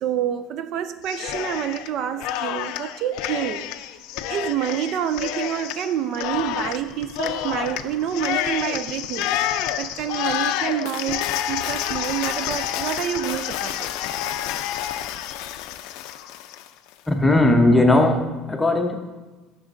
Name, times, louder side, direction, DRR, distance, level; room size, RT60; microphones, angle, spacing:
voice 1, 0.0-3.7 4.3-9.3 9.8-13.9, right 10 dB, 50° right, 11 dB, 0.3 m, -27 dB
Cheering, 1.0-1.9 2.2-16.7, left 11 dB, 70° left, 0.4 m, -29 dB
voice 2, 17.1-18.9, left 2 dB, 10° left, 4 dB, 0.7 m, -18 dB
10.5 x 6.2 x 2.6 m, 1.2 s
cardioid pair, 150°, 0 cm